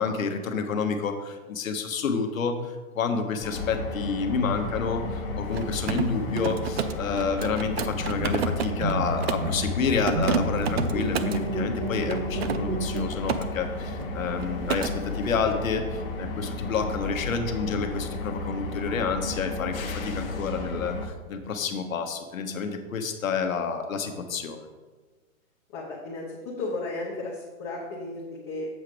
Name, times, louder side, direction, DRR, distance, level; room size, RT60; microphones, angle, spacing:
voice 1, 0.0-24.7, left 5 dB, 70° left, 6 dB, 1.2 m, -29 dB
sound 1, 3.4-21.1, left 2 dB, 40° left, 1.1 m, -33 dB
Mechanisms, 5.4-9.5 10.0-11.4 12.1-13.4 13.7-14.1 14.4-14.9, right 7 dB, 50° right, 0.5 m, -31 dB
sound 2, 8.0-13.0, right 1 dB, 75° right, 1.4 m, -31 dB
voice 2, 25.7-28.7, left 2 dB, 20° left, -4 dB, 0.8 m, -34 dB
7.4 x 4.8 x 5.1 m, 1.3 s
hypercardioid pair, 155°, 42 cm